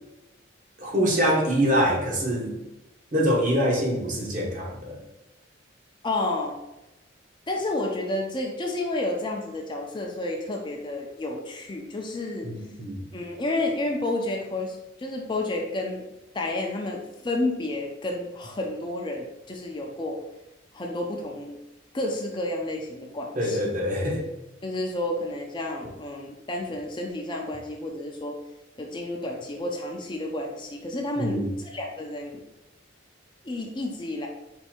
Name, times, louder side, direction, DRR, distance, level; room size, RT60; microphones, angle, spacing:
voice 1, 0.8-2.6 3.1-5.0 12.4-13.0 23.4-24.3 31.2-31.5, equal, 40° right, -1 dB, 0.9 m, -24 dB
voice 2, 6.0-6.6 7.5-12.5 13.1-16.0 16.3-20.2 20.7-21.6 21.9-23.6 24.6-28.4 28.8-32.4 33.4-34.3, left 2 dB, 25° left, 1 dB, 0.5 m, -30 dB
4.6 x 2.6 x 4.2 m, 0.95 s
head